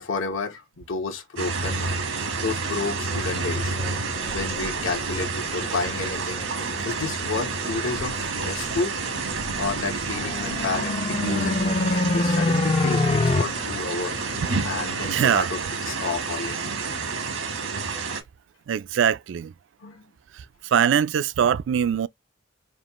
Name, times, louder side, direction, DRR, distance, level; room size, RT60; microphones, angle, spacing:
voice 1, 0.0-1.9 2.4-3.7 4.3-6.5 6.8-14.2 14.6-15.6 15.9-16.6 19.8-20.1, left 4 dB, 80° left, 1.1 m, -31 dB
sound 1, 1.4-18.2, right 4 dB, 85° right, 1.3 m, -29 dB
voice 2, 2.2-2.6 10.0-10.5 11.2-11.6 15.0-15.5 18.7-19.5 20.3-22.1, right 8 dB, 65° right, 0.3 m, -24 dB
sound 2, 3.2-15.2, left 2 dB, 50° left, 0.8 m, -41 dB
sound 3, 10.1-13.4, left 3 dB, 30° left, 0.4 m, -24 dB
5.1 x 2.4 x 3.0 m
head